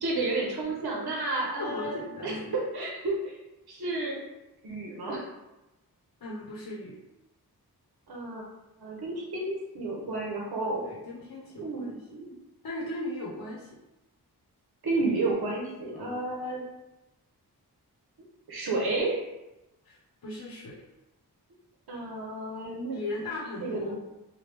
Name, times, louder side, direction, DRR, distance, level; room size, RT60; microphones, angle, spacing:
voice 1, 0.0-1.9 2.2-3.3 3.7-4.2 4.6-5.2 8.1-8.4 8.8-10.9 11.6-12.3 14.8-16.6 18.5-19.2 21.9-23.0 23.6-23.9, right 2 dB, 75° right, -2 dB, 0.8 m, -31 dB
voice 2, 1.6-2.6 6.2-7.0 10.9-12.0 12.6-13.7 15.9-16.2 19.8-20.8 22.9-24.0, left 2 dB, 60° left, -5 dB, 0.8 m, -38 dB
3.0 x 2.2 x 3.3 m, 0.98 s
wide cardioid pair, 60°, 38 cm